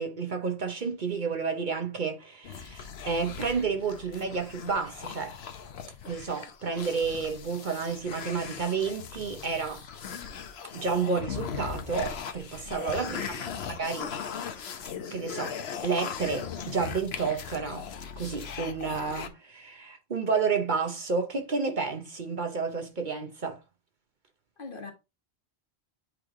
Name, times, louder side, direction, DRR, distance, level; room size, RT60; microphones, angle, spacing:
voice 1, 0.0-5.4 6.1-9.8 10.7-13.4 13.7-14.1 15.1-17.9 18.2-23.6, right 5 dB, 50° right, 0.9 m, -31 dB
sound 1, 2.4-19.3, left 7 dB, 70° left, 1.0 m, -39 dB
voice 2, 12.7-13.2 24.6-24.9, left 4 dB, 50° left, 1.4 m, -43 dB
8.0 x 3.3 x 3.6 m
omnidirectional pair, 1.1 m